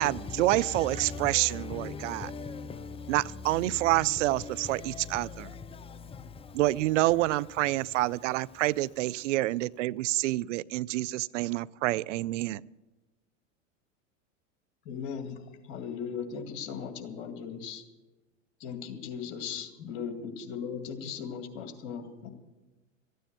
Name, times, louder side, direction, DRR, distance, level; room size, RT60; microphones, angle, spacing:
voice 1, 0.0-2.3 3.1-5.5 6.5-12.6, right 17 dB, 70° right, 0.5 m, -28 dB
voice 2, 1.0-3.1 4.8-6.6, left 4 dB, 15° left, 0.6 m, -40 dB
voice 3, 14.9-15.4 15.7-17.8 18.6-22.3, left 7 dB, 60° left, 2.2 m, -38 dB
14.0 x 9.4 x 8.1 m
hypercardioid pair, 95°, 38 cm